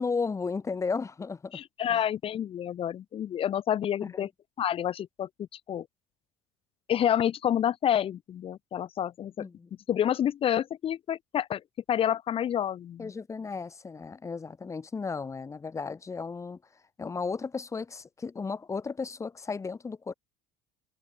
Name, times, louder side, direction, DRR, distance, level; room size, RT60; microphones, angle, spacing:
voice 1, 0.0-1.6 1.9-2.0 4.0-4.3 9.4-9.7 13.0-16.6 17.0-20.1, left 4 dB, 20° left, 5.3 m, -34 dB
voice 2, 1.5-4.3 4.6-5.3 5.7-5.9 6.9-9.5 9.9-11.6 11.9-13.1, left 10 dB, 45° left, 2.5 m, -28 dB
supercardioid pair, 100°, 14 cm